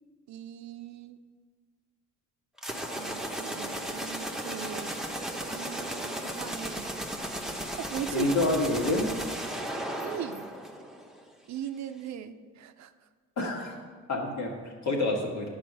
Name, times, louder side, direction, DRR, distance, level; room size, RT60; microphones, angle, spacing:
voice 1, 0.3-1.2 3.0-5.0 5.5-7.0 7.6-8.5 10.0-10.5 11.5-12.9, right 10 dB, 65° right, 10 dB, 0.6 m, -39 dB
sound 1, 2.6-11.2, right 1 dB, ahead, 1.0 m, -35 dB
voice 2, 8.1-9.1 13.4-13.8 14.1-15.5, left 2 dB, 65° left, 0 dB, 2.0 m, -28 dB
10.0 x 5.0 x 6.2 m, 1.5 s
cardioid pair, 90°, 30 cm